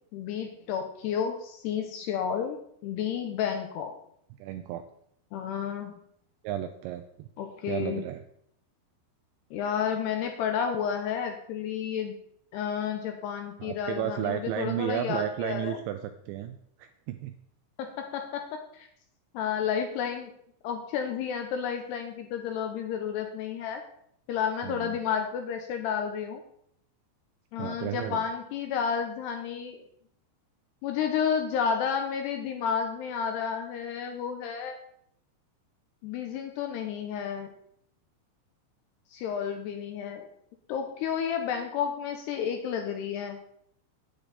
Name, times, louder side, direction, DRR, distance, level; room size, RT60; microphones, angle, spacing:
voice 1, 0.1-3.9 5.3-5.9 7.4-8.1 9.5-12.2 12.5-15.8 17.8-18.9 19.3-20.3 20.6-23.8 24.3-26.4 27.5-29.8 30.8-34.8 36.0-37.5 39.1-40.3 40.7-43.4, left 7 dB, 85° left, 5 dB, 2.4 m, -31 dB
voice 2, 4.4-4.8 6.4-7.3 7.7-8.2 13.6-17.3 24.6-24.9 27.6-28.2, right 12 dB, 85° right, 8 dB, 2.5 m, -33 dB
10.0 x 9.2 x 4.1 m, 0.69 s
omnidirectional pair, 5.6 m